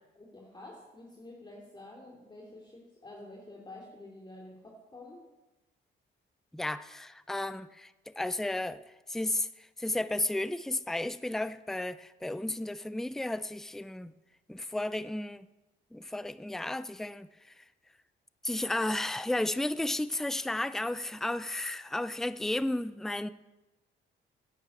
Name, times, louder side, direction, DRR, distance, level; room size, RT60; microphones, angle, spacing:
voice 1, 0.1-5.2, left 2 dB, 25° left, -2 dB, 3.1 m, -49 dB
voice 2, 6.5-8.8 9.1-9.5 9.8-14.1 14.5-15.5 15.9-17.3 17.6-17.7 18.4-23.3, left 1 dB, ahead, 14 dB, 0.5 m, -33 dB
10.0 x 9.9 x 8.4 m, 1.1 s
cardioid pair, 90°, 20 cm